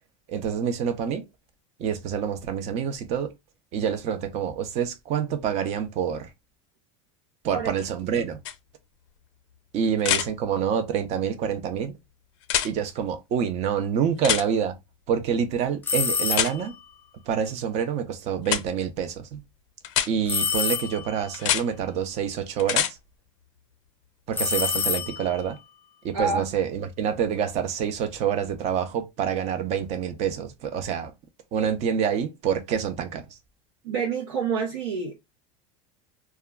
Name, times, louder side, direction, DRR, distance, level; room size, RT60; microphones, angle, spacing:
voice 1, 0.3-1.2 1.8-3.3 3.7-6.3 7.4-8.4 9.7-12.0 12.6-14.8 15.1-16.8 17.3-19.4 20.1-23.0 24.3-25.6 26.0-31.1 31.5-33.2, right 8 dB, 45° right, 0.6 m, -27 dB
sound 1, 8.4-8.5 10.0-10.3 12.4-12.7 14.2-14.4 16.3-16.5 18.4-18.6 19.8-20.1 21.3-21.6 22.6-22.9 25.0-25.1, left 11 dB, 70° left, 0.6 m, -24 dB
sound 2, 15.8-16.8 20.3-21.3 24.3-25.5, left 6 dB, 10° left, 0.4 m, -27 dB
voice 2, 33.8-35.2, right 5 dB, 90° right, 0.8 m, -27 dB
2.2 x 2.1 x 3.5 m
supercardioid pair, 130°, 16 cm